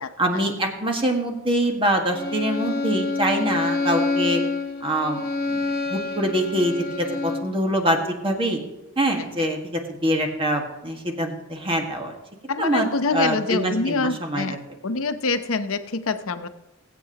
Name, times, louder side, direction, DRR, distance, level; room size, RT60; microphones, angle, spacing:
voice 1, 0.2-4.4 4.8-5.2 5.5-8.6 9.0-12.1 12.6-14.6, right 1 dB, 25° right, 3 dB, 1.7 m, -24 dB
Bowed string instrument, 2.1-7.6, left 3 dB, 50° left, 1.4 m, -27 dB
voice 2, 12.5-14.6 14.8-16.5, left 3 dB, 75° left, 10 dB, 0.8 m, -25 dB
21.0 x 8.3 x 2.9 m, 1.0 s
head